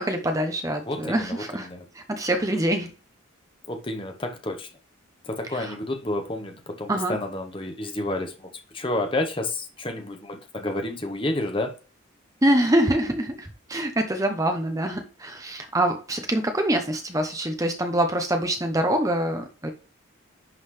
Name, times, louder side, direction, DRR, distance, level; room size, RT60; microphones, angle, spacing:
voice 1, 0.0-1.7 1.9-2.9 5.5-5.8 6.9-7.2 12.4-19.7, right 1 dB, 15° right, 0.8 m, -25 dB
voice 2, 0.9-1.8 3.7-4.7 5.3-11.7, left 1 dB, 25° left, 1.1 m, -30 dB
11.0 x 4.0 x 3.3 m
head